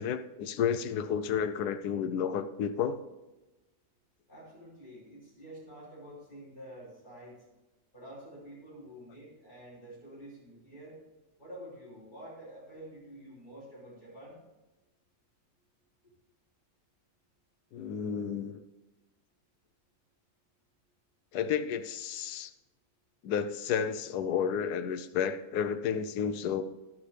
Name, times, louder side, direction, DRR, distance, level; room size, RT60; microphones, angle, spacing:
voice 1, 0.0-3.0 17.7-18.6 21.3-22.5 23.2-26.6, left 7 dB, 90° left, 10 dB, 1.2 m, -31 dB
voice 2, 4.3-7.4 7.9-11.0 11.4-14.4, right 1 dB, 30° left, -8 dB, 5.0 m, -48 dB
12.0 x 12.0 x 3.3 m, 1.1 s
omnidirectional pair, 1.6 m